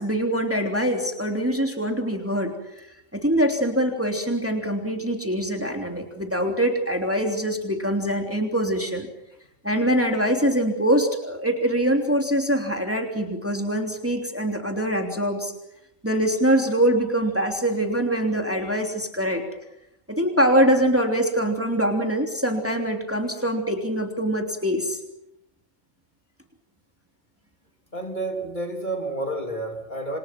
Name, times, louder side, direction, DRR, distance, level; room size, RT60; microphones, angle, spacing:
voice 1, 0.0-2.9 3.1-9.1 9.6-15.5 16.0-19.4 20.1-25.0, equal, 10° right, 3 dB, 3.2 m, -23 dB
voice 2, 27.9-30.2, right 2 dB, 35° left, 3 dB, 3.6 m, -30 dB
28.5 x 27.5 x 6.1 m, 0.83 s
omnidirectional pair, 1.4 m